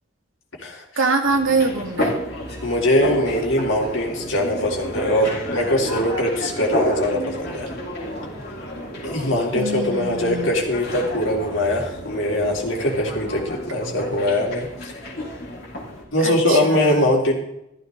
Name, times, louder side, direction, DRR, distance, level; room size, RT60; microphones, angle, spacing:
voice 1, 1.0-2.2 9.5-10.6 16.2-17.0, right 3 dB, 85° right, 3 dB, 2.3 m, -24 dB
sound 1, 1.2-16.0, left 1 dB, 50° left, 4.2 m, -31 dB
voice 2, 2.6-7.7 9.0-15.1 16.1-17.3, left 1 dB, 80° left, -1 dB, 3.7 m, -22 dB
14.5 x 14.5 x 4.0 m, 0.82 s
head